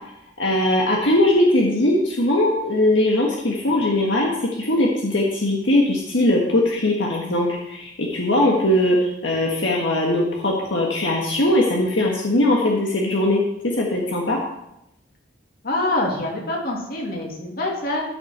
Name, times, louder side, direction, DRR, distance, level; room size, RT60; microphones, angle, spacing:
voice 1, 0.4-14.4, left 1 dB, 75° left, -2 dB, 1.6 m, -20 dB
voice 2, 15.6-18.0, left 2 dB, 55° left, -1 dB, 2.5 m, -25 dB
14.0 x 6.6 x 4.4 m, 0.84 s
head